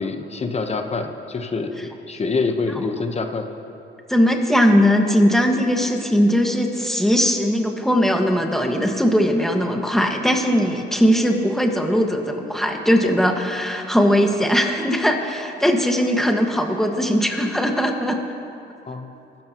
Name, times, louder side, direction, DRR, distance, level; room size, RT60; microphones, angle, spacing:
voice 1, 0.0-3.5 18.9-19.1, left 4 dB, 30° left, 5 dB, 1.1 m, -26 dB
voice 2, 4.1-18.2, equal, ahead, 2 dB, 1.8 m, -19 dB
24.0 x 13.0 x 3.1 m, 2.9 s
cardioid pair, 90°, 20 cm